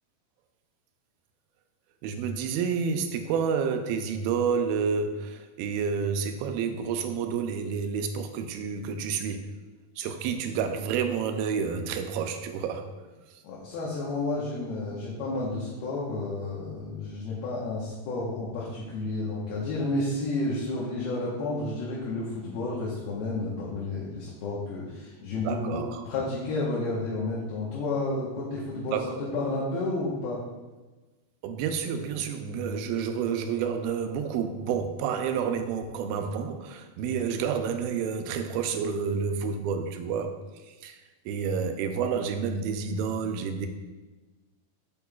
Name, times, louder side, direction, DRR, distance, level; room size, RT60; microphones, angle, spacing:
voice 1, 2.0-9.5 10.0-12.9 25.4-26.0 28.9-29.2 31.4-40.4 40.7-41.0 41.3-43.7, right 6 dB, 85° right, 7 dB, 2.4 m, -29 dB
voice 2, 13.4-29.0 29.3-30.4, left 2 dB, 80° left, -6 dB, 3.0 m, -31 dB
8.4 x 7.2 x 2.3 m, 1.2 s
omnidirectional pair, 4.4 m